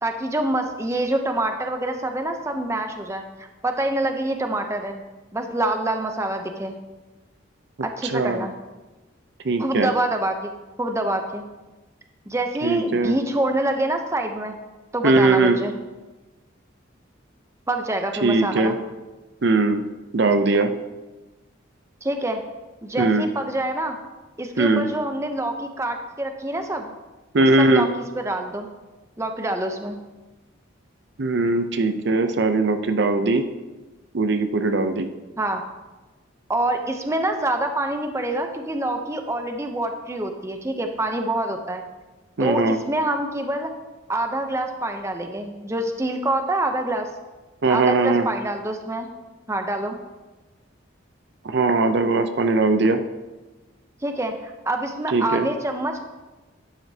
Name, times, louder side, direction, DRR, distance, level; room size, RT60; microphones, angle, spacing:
voice 1, 0.0-5.0 5.3-6.8 7.8-8.5 9.6-10.5 10.8-11.4 12.3-14.6 14.9-15.7 17.7-18.8 22.0-22.4 22.8-24.0 24.4-26.9 27.6-28.7 29.2-30.0 35.4-35.6 36.5-41.8 42.4-43.7 44.1-47.1 47.7-49.1 49.5-50.0 54.0-54.3 54.7-56.0, right 1 dB, 15° right, 5 dB, 0.6 m, -26 dB
voice 2, 8.0-8.5 9.4-9.9 12.6-13.2 15.0-15.6 18.2-18.7 19.4-19.8 20.1-20.7 23.0-23.3 24.6-24.8 27.3-27.9 31.2-33.4 34.1-35.1 42.4-42.8 47.6-48.3 51.4-53.0 55.1-55.5, right 3 dB, 60° right, 8 dB, 0.6 m, -20 dB
12.0 x 9.2 x 2.8 m, 1.2 s
head